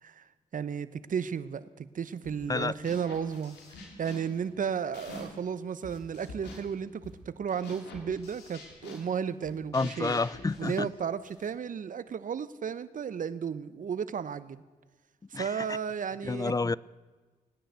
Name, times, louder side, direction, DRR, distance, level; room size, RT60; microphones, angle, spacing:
voice 1, 0.0-10.2 10.6-14.6 15.3-16.5, right 7 dB, 50° right, 16 dB, 0.9 m, -34 dB
sound 1, 2.2-2.5 2.8-5.5 5.8-11.5, left 2 dB, 80° left, 3.0 m, -47 dB
voice 2, 9.7-10.9 15.3-15.7 16.2-16.8, left 3 dB, 20° left, 22 dB, 0.4 m, -29 dB
18.0 x 10.0 x 8.0 m, 1.4 s
hypercardioid pair, 45°, 17 cm